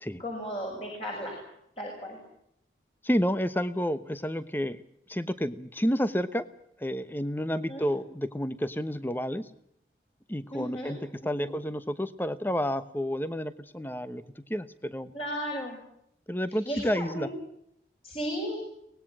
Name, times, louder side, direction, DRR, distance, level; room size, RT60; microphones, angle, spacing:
voice 1, 0.2-1.4 1.8-2.2 7.7-7.9 10.5-10.9 11.3-11.5 15.1-15.8 16.5-17.3 18.0-18.6, equal, 35° left, -1 dB, 6.6 m, -35 dB
voice 2, 3.0-4.8 5.1-6.5 6.8-9.5 10.3-15.1 16.3-17.3, equal, 10° left, 13 dB, 1.1 m, -30 dB
24.5 x 19.5 x 7.5 m, 0.74 s
head